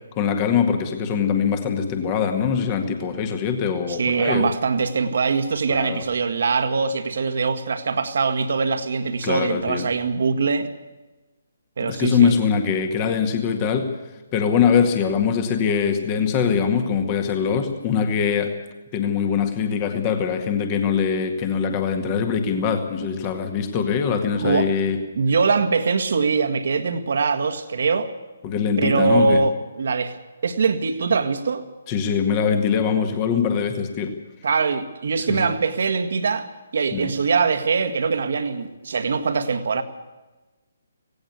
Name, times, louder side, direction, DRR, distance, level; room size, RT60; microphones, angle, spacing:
voice 1, 0.2-4.5 5.7-6.0 9.2-9.9 11.8-13.9 14.3-18.5 18.9-25.0 28.4-29.4 31.9-34.1 35.3-35.5 36.9-37.1, left 6 dB, 25° left, 6 dB, 2.0 m, -22 dB
voice 2, 3.9-10.7 11.8-12.3 24.3-24.7 25.2-28.1 28.8-30.2 30.4-31.6 34.4-39.8, right 4 dB, 55° right, 9 dB, 1.7 m, -22 dB
17.5 x 17.5 x 8.3 m, 1.2 s
figure-of-eight pair, 135°, 0 cm